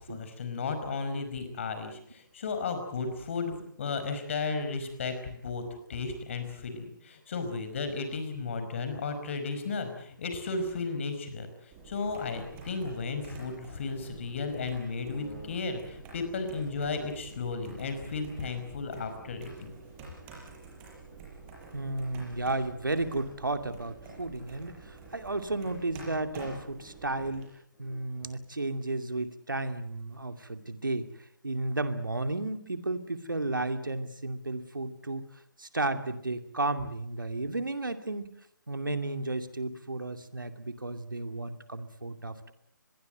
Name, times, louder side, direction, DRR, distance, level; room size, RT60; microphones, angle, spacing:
voice 1, 0.1-5.6 5.9-11.5 11.9-19.7, left 4 dB, 35° left, 8 dB, 5.1 m, -34 dB
sound 1, 11.7-27.5, right 4 dB, 15° right, 6.8 m, -48 dB
sound 2, 12.0-12.7 13.5-14.2 14.9-15.7 16.2-16.8 17.2-17.3 17.5-18.2 19.4-20.2 22.4-22.5 22.8-23.1 23.5-24.2 27.7-28.4, left 2 dB, 15° left, 7.0 m, -54 dB
voice 2, 21.7-27.4 27.8-31.1 31.4-35.2 35.6-38.3 38.7-42.5, right 2 dB, 70° right, 8 dB, 2.5 m, -33 dB
25.5 x 21.5 x 7.8 m, 0.71 s
figure-of-eight pair, 145°, 11 cm